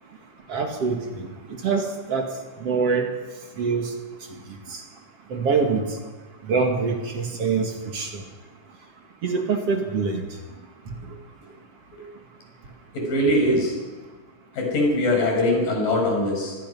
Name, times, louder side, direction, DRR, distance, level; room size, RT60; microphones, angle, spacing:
voice 1, 0.5-1.3 1.6-2.3 2.6-3.1 3.6-3.9 4.7-4.8 5.3-5.8 6.5-8.1 9.2-10.2, right 5 dB, 50° right, 3 dB, 2.6 m, -24 dB
voice 2, 12.9-13.8 14.5-16.6, left 1 dB, 85° left, 1 dB, 7.0 m, -22 dB
25.0 x 20.5 x 5.6 m, 1.3 s
omnidirectional pair, 3.8 m